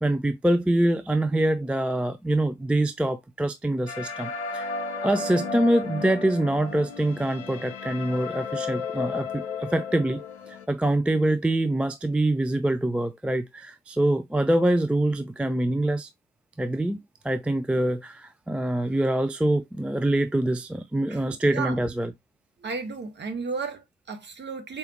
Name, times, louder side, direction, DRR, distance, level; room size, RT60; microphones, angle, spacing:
voice 1, 0.0-4.7 5.0-16.1 16.6-17.0 17.2-22.1, right 1 dB, 5° right, 0.3 m, -25 dB
sound 1, 3.9-10.7, left 4 dB, 85° left, 0.5 m, -33 dB
voice 2, 21.1-21.8 22.6-24.8, right 4 dB, 35° right, 1.3 m, -34 dB
4.3 x 3.4 x 3.0 m
figure-of-eight pair, 45°, 33 cm